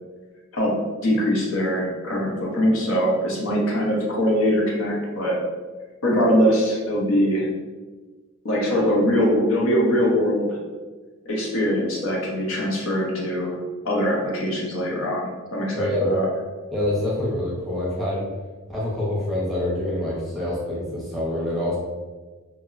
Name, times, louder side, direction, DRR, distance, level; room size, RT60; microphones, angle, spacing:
voice 1, 1.0-5.3 6.0-7.5 8.4-10.6 11.3-13.6 13.8-16.3, equal, 75° left, -3 dB, 0.7 m, -22 dB
voice 2, 15.7-16.2 16.7-18.3 18.7-21.8, left 1 dB, ahead, -7 dB, 0.6 m, -26 dB
2.9 x 2.0 x 2.4 m, 1.3 s
head